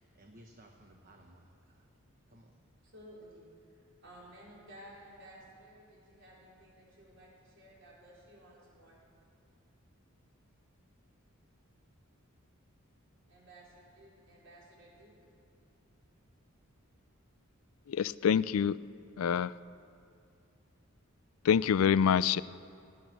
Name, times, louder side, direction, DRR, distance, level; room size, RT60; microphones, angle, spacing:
voice 1, 0.0-1.9 2.3-2.6, right 1 dB, 40° right, 2 dB, 1.0 m, -58 dB
voice 2, 2.8-9.1 13.3-15.1, right 1 dB, 60° right, -5 dB, 4.4 m, -55 dB
voice 3, 17.9-18.8 19.2-19.5 21.4-22.4, left 7 dB, 75° left, 18 dB, 0.4 m, -26 dB
17.0 x 12.5 x 6.3 m, 2.5 s
head